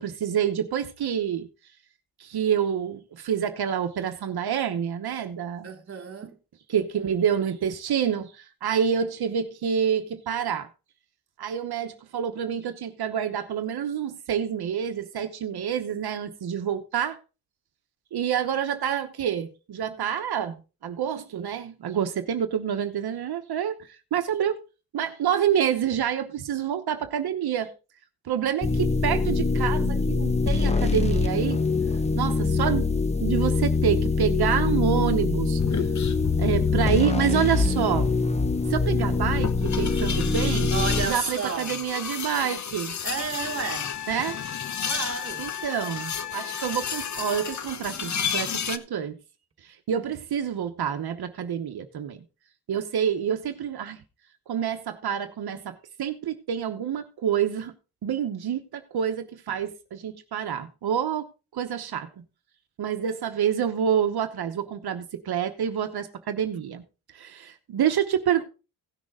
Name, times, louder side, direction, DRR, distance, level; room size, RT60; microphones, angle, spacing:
voice 1, 0.0-1.5 2.2-5.7 6.7-10.7 11.4-17.2 18.1-20.6 20.8-24.6 24.9-27.7 28.2-31.6 32.2-32.9 33.2-35.9 36.4-38.1 38.7-43.0 44.1-44.4 45.4-49.2 49.6-52.2 52.7-54.0 54.5-57.7 58.0-61.3 61.5-62.2 62.8-66.8 67.1-68.4, right 8 dB, 75° right, 1.0 m, -27 dB
voice 2, 5.6-6.4 40.7-41.8 43.0-44.0 44.8-45.5, right 6 dB, 35° right, 1.5 m, -32 dB
sound 1, 28.6-41.1, left 4 dB, 15° left, 0.7 m, -24 dB
sound 2, 35.6-48.8, left 7 dB, 50° left, 0.9 m, -33 dB
Wind instrument woodwind instrument, 43.4-47.6 50.3-50.4, left 11 dB, 85° left, 0.8 m, -37 dB
16.5 x 6.5 x 3.6 m
wide cardioid pair, 155°, 38 cm